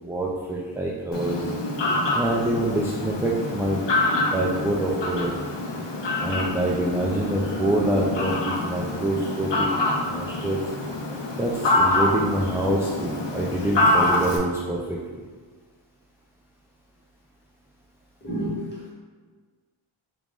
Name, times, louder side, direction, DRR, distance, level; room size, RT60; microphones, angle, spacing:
voice 1, 0.0-1.4 2.1-3.8 4.3-5.3 6.2-9.7 10.0-10.6 11.3-15.2, right 1 dB, 5° right, -4 dB, 0.3 m, -26 dB
Fowl, 1.1-14.4, left 2 dB, 60° left, 0.7 m, -26 dB
voice 2, 18.2-18.9, right 1 dB, 20° left, -8 dB, 1.5 m, -30 dB
3.0 x 2.5 x 3.6 m, 1.5 s
cardioid pair, 40°, 50 cm